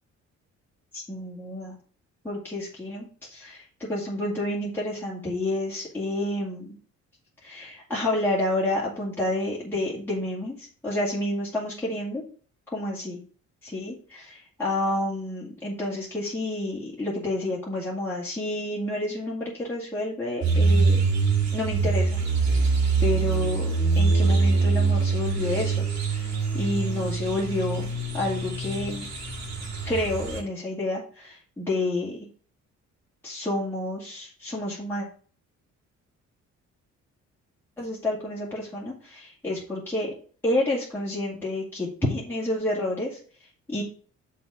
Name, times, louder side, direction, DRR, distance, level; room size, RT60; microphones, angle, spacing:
voice 1, 0.9-1.7 2.2-6.7 7.4-12.2 12.7-13.2 13.6-21.0 21.5-22.2 22.5-22.7 23.0-27.9 28.1-29.1 29.9-32.2 33.2-35.1 37.8-40.1 40.4-43.2 43.7-43.8, left 1 dB, 5° left, -7 dB, 2.3 m, -29 dB
sound 1, 20.4-30.4, right 4 dB, 60° right, 2.2 m, -24 dB
5.9 x 4.1 x 6.3 m, 0.43 s
cardioid pair, 90°, 30 cm